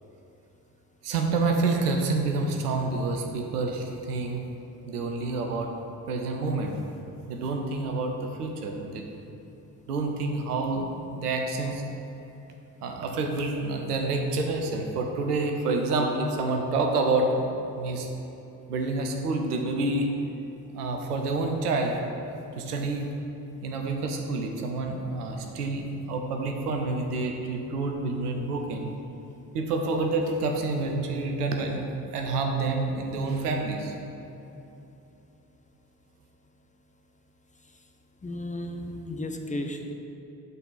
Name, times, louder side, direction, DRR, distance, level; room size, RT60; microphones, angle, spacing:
voice 1, 1.0-4.4 4.9-5.7 6.1-6.8 7.3-9.1 9.9-11.8 12.8-18.1 18.7-20.1 20.7-22.2 22.6-23.1 23.6-28.9 29.5-33.9, right 3 dB, 80° right, 3 dB, 0.8 m, -28 dB
voice 2, 38.2-39.9, left 1 dB, 15° left, 4 dB, 0.7 m, -34 dB
12.0 x 4.1 x 3.9 m, 3.0 s
figure-of-eight pair, 40°, 46 cm